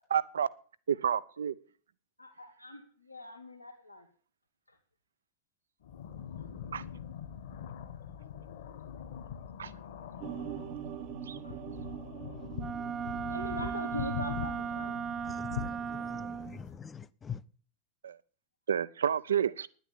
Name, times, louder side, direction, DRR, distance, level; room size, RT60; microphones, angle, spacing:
voice 1, 0.1-0.5 0.9-1.5 6.7-6.8 9.6-9.7 11.3-11.4 18.0-18.2 18.7-19.7, right 8 dB, 65° right, 0.6 m, -29 dB
voice 2, 2.2-4.1 4.7-4.8 6.4-6.5 11.4-11.6 13.2-15.1, left 1 dB, 85° left, 1.7 m, -42 dB
sound 1, 5.8-16.8, left 8 dB, 55° left, 1.6 m, -43 dB
sound 2, 10.2-15.4 15.7-16.2, right 11 dB, 40° right, 0.9 m, -44 dB
Wind instrument woodwind instrument, 12.6-16.6, right 7 dB, 25° right, 0.6 m, -36 dB
voice 3, 15.2-17.4, left 7 dB, 20° left, 0.6 m, -44 dB
10.0 x 9.3 x 8.6 m
figure-of-eight pair, 90°, 0 cm